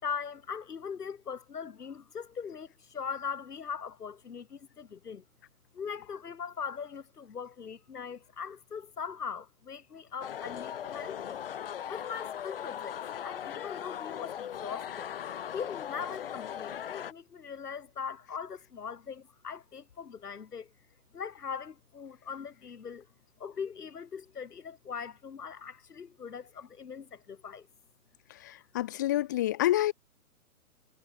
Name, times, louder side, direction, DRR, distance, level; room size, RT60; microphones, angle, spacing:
voice 1, 0.0-5.2 5.7-11.4 11.9-15.1 15.5-20.7 21.1-23.1 23.4-27.7, left 6 dB, 80° left, 4.5 m, -40 dB
sound 1, 10.2-17.1, left 9 dB, 40° left, 4.6 m, -39 dB
voice 2, 28.3-29.9, left 14 dB, 10° left, 1.1 m, -28 dB
hypercardioid pair, 175°, 46 cm